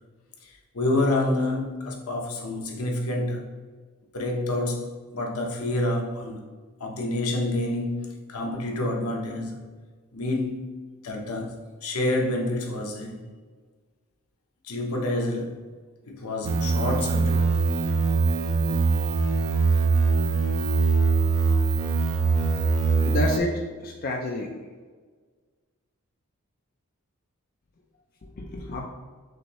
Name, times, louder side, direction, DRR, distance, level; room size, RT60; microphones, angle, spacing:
voice 1, 0.4-3.5 4.1-6.4 6.8-9.6 10.1-10.8 11.0-13.2 14.6-15.7 16.1-17.5, left 1 dB, 75° left, 1 dB, 0.8 m, -28 dB
sound 1, 16.4-23.4, right 4 dB, 75° right, 0.5 m, -22 dB
voice 2, 23.0-24.5 28.4-28.9, left 1 dB, 40° left, 0 dB, 0.4 m, -29 dB
6.2 x 2.6 x 3.0 m, 1.5 s
head